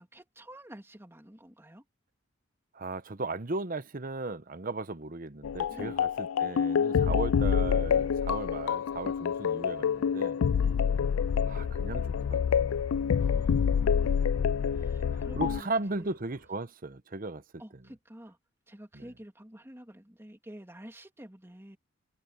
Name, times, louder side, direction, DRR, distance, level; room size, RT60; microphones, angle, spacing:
voice 1, 0.0-1.8 5.7-6.0 7.0-7.2 10.6-10.8 13.1-14.2 14.7-16.1 17.6-18.4 18.7-21.8, equal, 10° right, 2.5 m, -49 dB
voice 2, 2.7-10.4 11.5-12.6 14.6-17.4 17.7-17.8 18.9-19.1, right 3 dB, 45° right, 1.0 m, -36 dB
sound 1, 5.4-15.6, left 7 dB, 85° left, 0.4 m, -27 dB
sound 2, 7.6-16.5, right 2 dB, 75° right, 7.2 m, -58 dB
head